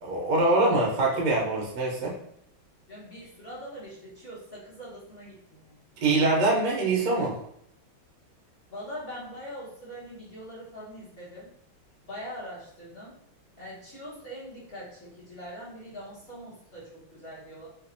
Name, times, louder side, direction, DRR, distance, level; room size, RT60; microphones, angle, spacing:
voice 1, 0.0-2.1 6.0-7.4, right 2 dB, 60° right, -3 dB, 1.3 m, -24 dB
voice 2, 2.9-5.8 8.7-11.5 12.0-13.1 13.6-17.7, equal, 30° left, -8 dB, 1.4 m, -42 dB
4.3 x 2.6 x 2.6 m, 0.71 s
omnidirectional pair, 2.2 m